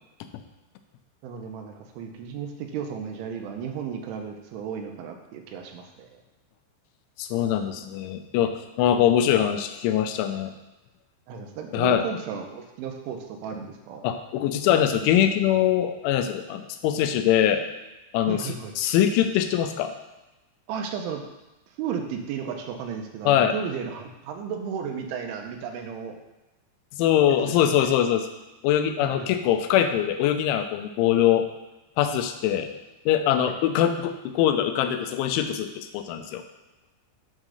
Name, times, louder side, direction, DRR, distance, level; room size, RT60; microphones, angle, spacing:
voice 1, 1.2-6.2 11.3-14.0 18.2-18.7 20.7-21.2 21.8-26.2 27.3-27.9 29.0-29.3 33.4-33.5, right 7 dB, 85° right, 4 dB, 3.3 m, -34 dB
voice 2, 7.2-10.5 11.7-12.0 14.0-17.6 18.1-19.9 23.3-23.6 27.0-28.3 28.6-31.5 32.0-32.7 33.1-36.4, left 10 dB, 85° left, 7 dB, 3.0 m, -23 dB
8.8 x 3.7 x 6.3 m, 1.0 s
omnidirectional pair, 5.4 m